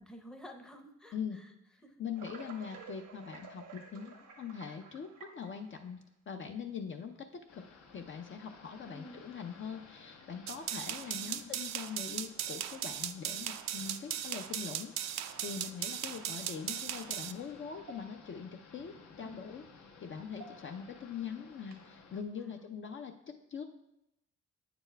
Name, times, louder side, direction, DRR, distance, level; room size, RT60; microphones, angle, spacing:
voice 1, 0.0-1.5 1.8-2.0 8.8-9.2 11.1-11.7 19.2-19.6 22.4-22.6, equal, ahead, 4 dB, 0.7 m, -52 dB
voice 2, 1.1-1.4 2.0-7.3 7.5-7.6 7.9-19.6 20.0-23.6, left 7 dB, 40° left, 5 dB, 0.5 m, -42 dB
sound 1, 2.2-6.0 6.8-6.9 7.9-8.0 8.8-9.1 9.5-9.6 10.1-10.2 11.6-11.7 14.5-14.6 15.3-16.0 17.3-17.4 17.8-18.4 18.8-18.9 20.2-20.9 21.6-22.0, right 5 dB, 85° right, 1.0 m, -52 dB
sound 2, 7.5-22.2, left 5 dB, 70° left, 1.1 m, -57 dB
sound 3, 10.5-17.3, right 11 dB, 65° right, 0.4 m, -38 dB
8.8 x 6.9 x 2.2 m, 0.85 s
cardioid pair, 90°, 30 cm